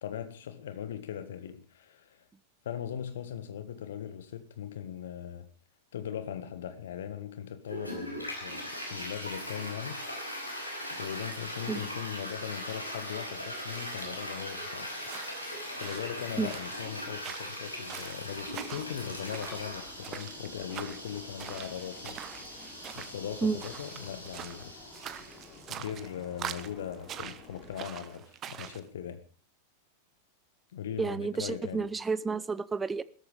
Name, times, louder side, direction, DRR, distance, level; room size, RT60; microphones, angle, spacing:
voice 1, 0.0-2.3 2.7-5.5 5.9-10.3 10.9-14.9 15.8-22.2 22.9-24.7 25.7-29.2 30.7-31.9, left 9 dB, 60° left, 1.8 m, -39 dB
Toilet flush, 7.6-25.6, equal, 85° left, 5.7 m, -40 dB
sound 1, 15.0-28.8, right 10 dB, 30° right, 1.2 m, -45 dB
sound 2, 18.3-27.8, left 3 dB, 30° left, 5.2 m, -52 dB
voice 2, 31.0-33.0, right 4 dB, 15° right, 0.8 m, -30 dB
16.5 x 14.0 x 5.2 m
figure-of-eight pair, 90°, 0 cm